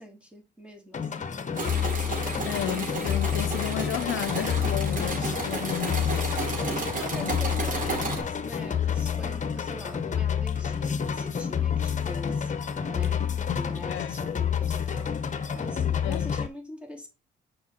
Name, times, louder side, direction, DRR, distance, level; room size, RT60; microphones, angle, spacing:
voice 1, 0.0-1.3 5.2-5.7 6.9-12.5 12.9-13.3 13.5-15.2 15.5-17.1, left 1 dB, 5° right, 2.9 m, -43 dB
sound 1, 0.9-16.5, left 8 dB, 40° left, 1.2 m, -29 dB
sound 2, 1.5-8.2, right 3 dB, 40° right, 3.9 m, -32 dB
voice 2, 2.4-6.1 7.2-7.4 13.5-13.6 13.9-14.2 16.0-16.3, left 13 dB, 75° left, 0.7 m, -32 dB
7.0 x 5.4 x 4.5 m
cardioid pair, 90°, 20 cm